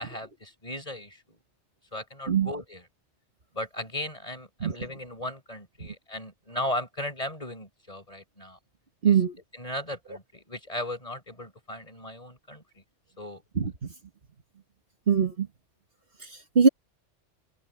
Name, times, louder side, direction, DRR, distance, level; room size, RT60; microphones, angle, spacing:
voice 1, 0.0-1.4 1.9-2.8 3.5-8.6 9.1-9.2 9.5-12.8 13.2-13.4, left 1 dB, 30° left, 6.4 m, -36 dB
voice 2, 9.0-9.3 13.6-13.9 15.1-15.5 16.6-16.7, right 6 dB, 55° right, 1.8 m, -22 dB
open air
omnidirectional pair, 1.2 m